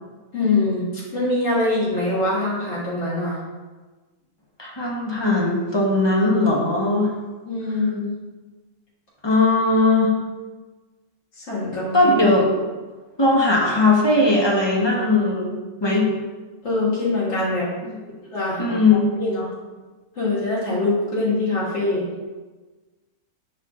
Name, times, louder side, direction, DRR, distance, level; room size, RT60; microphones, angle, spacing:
voice 1, 0.3-3.4 7.5-8.2 11.5-12.1 15.1-15.2 16.6-17.7 18.3-18.8 19.2-19.5 20.2-22.0, left 2 dB, 50° left, -8 dB, 2.1 m, -23 dB
voice 2, 4.6-7.1 9.2-10.1 11.9-12.5 13.2-16.1 17.8-18.0 18.6-19.2, left 2 dB, 20° left, -3 dB, 0.8 m, -19 dB
5.8 x 4.4 x 3.7 m, 1.3 s
omnidirectional pair, 1.6 m